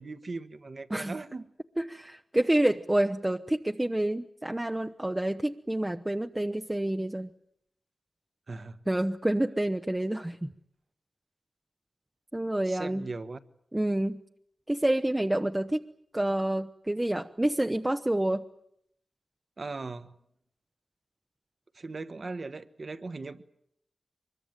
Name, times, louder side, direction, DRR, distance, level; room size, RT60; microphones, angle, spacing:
voice 1, 0.0-1.5 8.5-8.8 12.6-13.4 19.6-20.1 21.7-23.4, right 3 dB, 55° right, 1.4 m, -39 dB
voice 2, 1.8-7.3 8.9-10.5 12.3-13.1 13.7-14.2 14.7-15.9 16.1-18.4, right 1 dB, 15° right, 0.9 m, -28 dB
24.0 x 22.0 x 9.1 m
cardioid pair, 50°, 0 cm